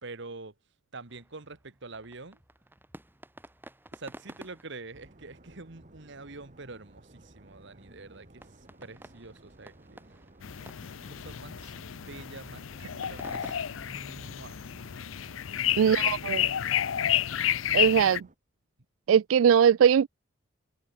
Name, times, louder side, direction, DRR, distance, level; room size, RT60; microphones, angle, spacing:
voice 1, 0.0-0.5 0.9-2.4 3.9-8.5 8.8-10.0 10.6-10.7 11.1-14.6 15.8-16.8, right 3 dB, 65° right, 1.8 m, -46 dB
sound 1, 1.1-13.6, right 1 dB, 10° right, 4.0 m, -53 dB
sound 2, 4.9-18.4, right 1 dB, 40° right, 2.1 m, -56 dB
sound 3, 10.4-18.2, left 11 dB, 75° left, 0.6 m, -31 dB
voice 2, 15.8-16.4 17.7-18.3 19.1-20.1, right 8 dB, 85° right, 0.3 m, -21 dB
head